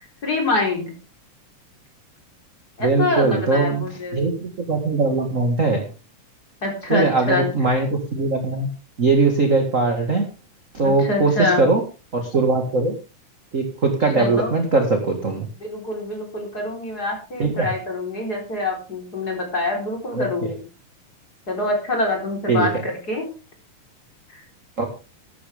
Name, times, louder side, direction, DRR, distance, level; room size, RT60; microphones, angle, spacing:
voice 1, 0.2-0.9 2.8-4.3 6.6-7.7 10.8-11.6 14.0-14.5 15.6-20.6 21.5-23.3 24.3-24.4, left 2 dB, 30° left, 1 dB, 4.6 m, -25 dB
voice 2, 2.8-3.8 4.1-5.8 6.9-7.9 8.1-8.7 9.0-10.2 10.7-11.3 11.6-11.8 12.1-12.9 13.5-15.5 17.4-17.7 22.5-22.7 24.8-24.9, right 3 dB, 30° right, 4 dB, 1.8 m, -20 dB
14.0 x 12.5 x 3.6 m, 0.32 s
omnidirectional pair, 3.6 m